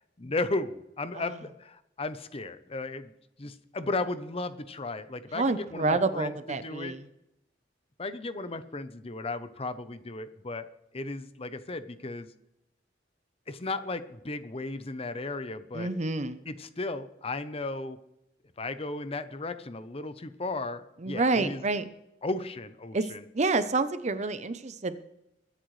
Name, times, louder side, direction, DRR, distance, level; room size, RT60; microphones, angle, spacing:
voice 1, 0.2-3.1 3.4-6.3 6.6-7.0 8.0-10.7 10.9-12.3 13.5-15.9 16.5-18.0 18.6-21.6 22.2-23.2, left 2 dB, 35° left, 12 dB, 0.8 m, -35 dB
voice 2, 5.3-7.0 15.7-16.4 21.0-21.9 22.9-23.0 23.3-25.0, right 3 dB, 40° right, 12 dB, 0.7 m, -28 dB
22.0 x 10.0 x 3.2 m, 0.85 s
head